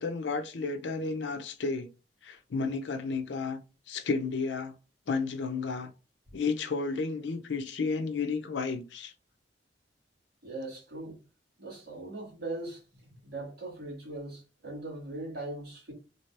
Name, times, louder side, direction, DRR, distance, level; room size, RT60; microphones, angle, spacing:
voice 1, 0.0-1.9 2.2-3.6 3.9-4.8 5.1-5.9 6.3-9.1, left 4 dB, 80° left, 0.5 m, -32 dB
voice 2, 10.4-11.2 11.6-12.8 13.2-15.9, right 2 dB, 60° right, 2.0 m, -40 dB
3.3 x 2.7 x 3.3 m
head